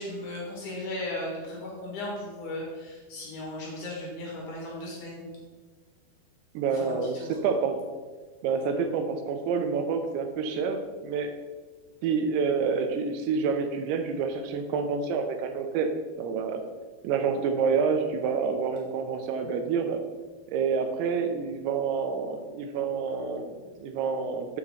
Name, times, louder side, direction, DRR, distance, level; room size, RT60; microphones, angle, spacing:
voice 1, 0.0-5.3 6.7-7.4, left 1 dB, 60° left, -3 dB, 2.7 m, -36 dB
voice 2, 6.5-7.8 8.4-11.3 12.0-15.9 16.2-16.6 17.0-20.0 20.5-24.6, right 5 dB, 90° right, 7 dB, 2.7 m, -28 dB
7.5 x 5.6 x 4.1 m, 1.4 s
omnidirectional pair, 4.5 m